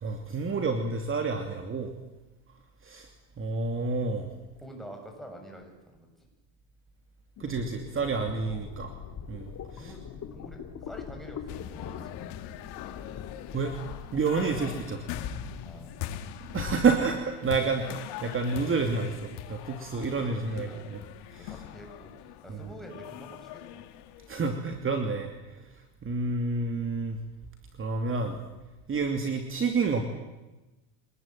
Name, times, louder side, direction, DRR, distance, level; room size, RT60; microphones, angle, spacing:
voice 1, 0.0-1.9 2.8-3.1 3.4-4.3 7.4-8.9 9.3-9.9 13.5-13.7 14.1-15.0 16.5-20.7 21.3-21.5 22.5-22.6 24.3-25.3 25.5-25.6 26.0-27.2 27.8-28.4 28.9-30.0, right 4 dB, 30° right, 5 dB, 2.8 m, -29 dB
voice 2, 4.6-6.1 8.5-8.6 9.8-10.0 10.3-12.2 15.6-16.0 19.9-21.0 21.4-22.1 22.4-23.8, equal, ahead, 2 dB, 7.5 m, -47 dB
sound 1, 7.4-16.8, left 8 dB, 45° left, 2.8 m, -42 dB
sound 2, 11.5-24.4, left 12 dB, 75° left, 2.2 m, -42 dB
26.0 x 20.0 x 9.2 m, 1.1 s
cardioid pair, 125°, 41 cm